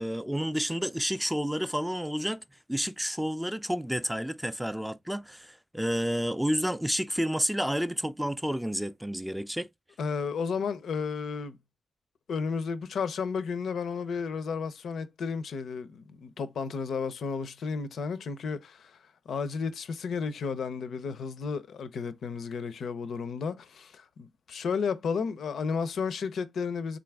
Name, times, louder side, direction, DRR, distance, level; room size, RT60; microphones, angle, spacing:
voice 1, 0.0-2.4 2.7-9.7, equal, 5° right, 0.3 m, -30 dB
voice 2, 10.0-11.6 12.3-19.0 19.3-27.0, left 5 dB, 75° left, 0.4 m, -33 dB
3.9 x 2.4 x 3.3 m
cardioid pair, 65°, 0 cm